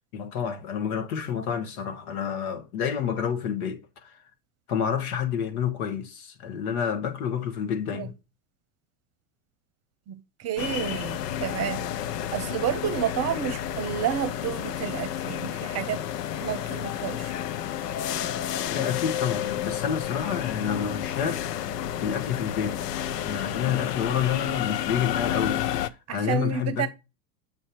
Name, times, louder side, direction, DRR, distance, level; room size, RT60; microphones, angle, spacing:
voice 1, 0.1-4.2 4.7-8.1 18.7-21.4 22.0-22.8 23.2-26.9, left 8 dB, 65° left, 1.5 m, -29 dB
voice 2, 10.1-11.9 12.3-16.0 16.4-17.3 26.1-26.9, right 9 dB, 35° right, 0.8 m, -30 dB
sound 1, 10.6-25.9, left 11 dB, 85° left, 0.6 m, -31 dB
7.5 x 2.8 x 4.7 m
hypercardioid pair, 100°, 47 cm